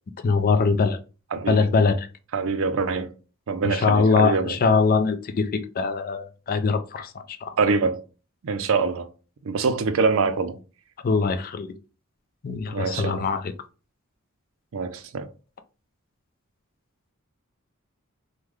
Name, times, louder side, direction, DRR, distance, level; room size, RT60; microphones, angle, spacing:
voice 1, 0.2-1.0 1.5-2.1 3.6-7.1 7.4-7.5 11.0-11.7 12.4-13.4, left 4 dB, 40° left, 0.4 m, -22 dB
voice 2, 2.3-3.1 3.5-4.6 7.6-8.0 8.4-9.1 9.4-10.6 12.7-13.3 14.7-15.3, right 4 dB, 65° right, 0.4 m, -24 dB
3.6 x 2.1 x 3.1 m
head